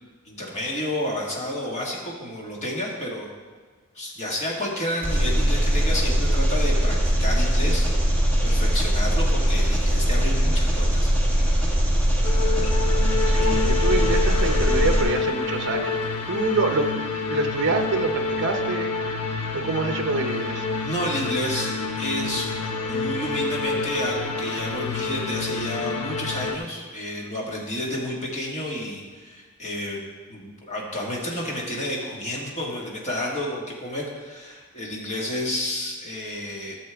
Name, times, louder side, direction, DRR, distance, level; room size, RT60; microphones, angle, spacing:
voice 1, 0.3-3.3 4.0-8.1 8.4-11.1 20.8-22.5 22.8-30.0 30.3-36.8, left 1 dB, 30° left, -2 dB, 1.8 m, -30 dB
Engine, 5.0-15.0, equal, 10° left, 1.6 m, -21 dB
sound 1, 12.2-26.6, left 4 dB, 80° left, 0.8 m, -28 dB
voice 2, 13.2-16.0 16.3-16.9 17.3-18.9 19.5-20.7, right 3 dB, 50° right, 5 dB, 0.8 m, -26 dB
13.0 x 6.8 x 3.5 m, 1.5 s
head